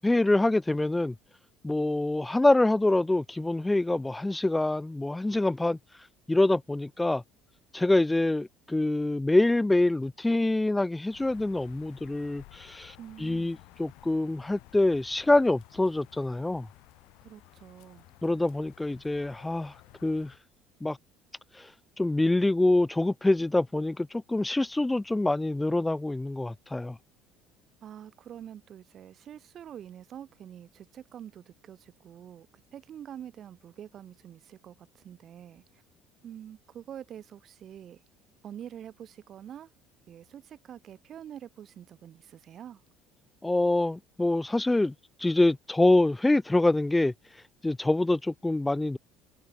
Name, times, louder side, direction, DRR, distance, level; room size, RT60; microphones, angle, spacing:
voice 1, 0.0-1.1 1.6-7.2 7.7-16.7 18.2-20.4 20.8-21.0 21.5-27.0 43.4-44.9 45.2-49.0, left 2 dB, 10° left, 0.5 m, -26 dB
sound 1, 11.1-20.4, left 24 dB, 75° left, 4.3 m, -55 dB
voice 2, 13.0-13.5 17.2-18.1 27.8-32.5 32.7-35.8 36.2-38.0 38.4-39.7 40.1-42.8, right 10 dB, 50° right, 3.7 m, -46 dB
supercardioid pair, 95°, 0 cm